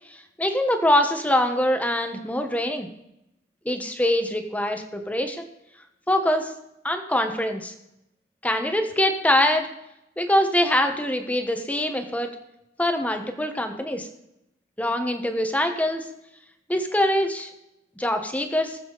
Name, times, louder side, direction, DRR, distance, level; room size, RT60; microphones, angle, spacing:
voice 1, 0.1-2.9 3.6-5.5 6.1-6.5 6.8-7.7 8.4-9.7 10.2-12.3 12.8-14.1 14.8-16.1 16.7-17.5 18.0-18.8, left 1 dB, 10° left, 5 dB, 1.3 m, -24 dB
20.0 x 7.5 x 4.1 m, 0.84 s
head